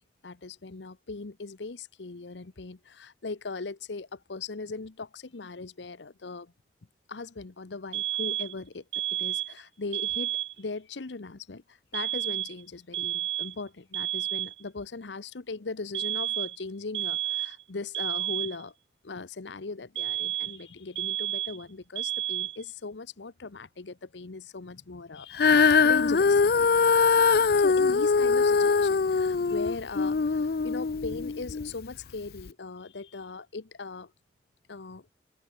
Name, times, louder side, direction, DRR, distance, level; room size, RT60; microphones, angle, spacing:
voice 1, 0.2-6.5 7.1-8.8 9.1-18.7 19.0-26.7 27.5-34.1 34.7-35.1, left 3 dB, 90° left, 0.9 m, -39 dB
sound 1, 7.9-8.6 8.9-9.6 9.9-10.6 11.9-12.6 12.9-13.6 13.9-14.6 15.9-16.6 16.9-17.6 17.9-18.6 20.0-20.6 21.0-21.6 22.0-22.6, right 13 dB, 90° right, 1.5 m, -31 dB
Female singing, 25.3-31.7 32.4-32.5, left 5 dB, 55° left, 0.5 m, -22 dB
head